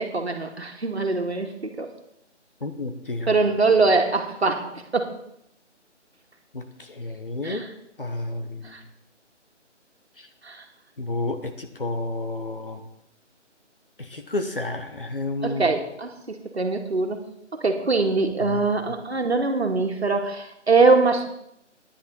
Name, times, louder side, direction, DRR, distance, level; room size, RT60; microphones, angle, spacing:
voice 1, 0.0-1.9 3.3-5.1 7.4-7.7 8.7-8.8 10.5-10.6 15.4-17.2 17.6-21.2, right 3 dB, 60° right, 3 dB, 2.0 m, -23 dB
voice 2, 2.6-3.4 6.5-7.6 8.0-8.8 11.0-12.8 14.0-15.6 18.4-18.6, left 2 dB, 45° left, 6 dB, 1.3 m, -31 dB
10.5 x 9.7 x 5.5 m, 0.77 s
figure-of-eight pair, 180°, 36 cm